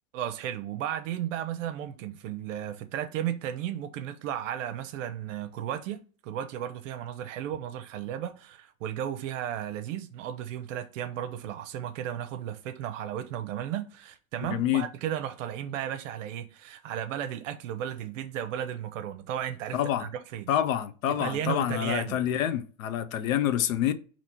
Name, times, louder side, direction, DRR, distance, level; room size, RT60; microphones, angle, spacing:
voice 1, 0.1-20.5 21.1-22.2, right 10 dB, 70° right, 0.6 m, -34 dB
voice 2, 14.5-14.8 19.7-20.1 20.5-23.9, left 11 dB, 85° left, 0.8 m, -27 dB
4.2 x 2.9 x 4.3 m
supercardioid pair, 130°, 39 cm